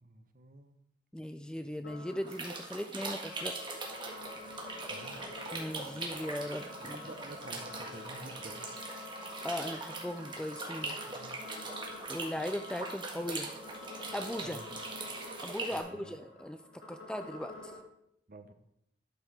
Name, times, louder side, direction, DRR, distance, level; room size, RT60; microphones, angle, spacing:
voice 1, 0.0-0.8 4.9-5.2 6.8-8.7 11.1-11.4 14.4-14.7 15.7-16.2 18.3-18.5, right 2 dB, 50° right, 8 dB, 0.8 m, -49 dB
voice 2, 1.1-3.6 5.5-7.0 9.4-11.0 12.1-13.5 14.1-14.6 15.4-16.6 16.9-17.7, left 1 dB, 5° left, 9 dB, 0.3 m, -38 dB
sound 1, 1.8-17.8, left 2 dB, 85° left, 2.0 m, -48 dB
sound 2, 2.3-15.8, right 3 dB, 25° right, 1.5 m, -41 dB
11.5 x 6.0 x 3.3 m, 0.78 s
head